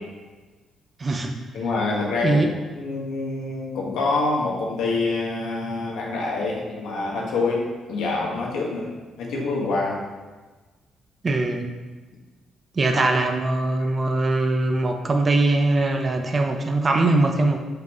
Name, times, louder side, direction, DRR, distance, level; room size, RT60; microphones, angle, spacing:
voice 1, 1.0-1.3 2.2-2.5 11.2-11.7 12.8-17.6, right 2 dB, 35° right, 5 dB, 0.8 m, -21 dB
voice 2, 1.5-2.4 2.7-8.9 9.2-10.0 12.9-13.0 13.8-13.9, left 3 dB, 85° left, -2 dB, 1.6 m, -26 dB
6.9 x 5.9 x 3.1 m, 1.3 s
cardioid pair, 90°, 0 cm